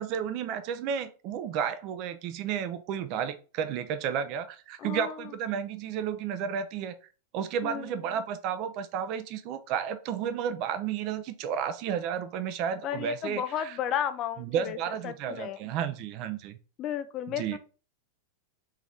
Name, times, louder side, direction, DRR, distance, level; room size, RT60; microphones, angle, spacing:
voice 1, 0.0-6.9 7.3-13.8 14.4-16.6 17.4-17.6, right 8 dB, 40° right, 10 dB, 0.4 m, -32 dB
voice 2, 4.8-5.2 7.6-7.9 12.8-14.8 15.0-15.6 16.8-17.6, left 10 dB, 35° left, 11 dB, 0.3 m, -33 dB
3.7 x 3.0 x 3.4 m, 0.36 s
figure-of-eight pair, 90°, 0 cm